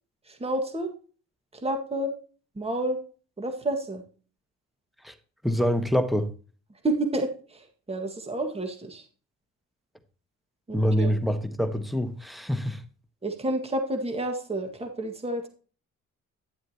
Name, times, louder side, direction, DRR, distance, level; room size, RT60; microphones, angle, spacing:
voice 1, 0.3-0.9 1.5-2.1 2.6-3.0 3.4-4.0 6.8-9.0 10.7-11.1 13.2-15.5, right 1 dB, 20° right, 1.9 m, -30 dB
voice 2, 5.4-6.3 10.7-12.8, equal, ahead, 1.4 m, -25 dB
11.0 x 7.6 x 2.9 m
cardioid pair, 90°, 30 cm